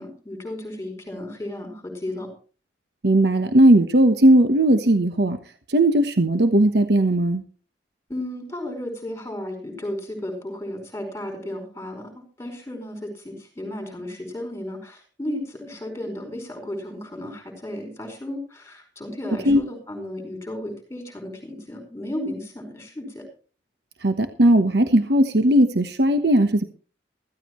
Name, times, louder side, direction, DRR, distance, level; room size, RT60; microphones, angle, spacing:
voice 1, 0.0-2.3 8.1-23.2, left 1 dB, 15° left, 4 dB, 4.9 m, -34 dB
voice 2, 3.0-5.4 5.7-7.4 19.5-19.6 24.0-26.6, right 1 dB, 65° right, 9 dB, 1.2 m, -17 dB
15.0 x 15.0 x 3.1 m, 0.38 s
head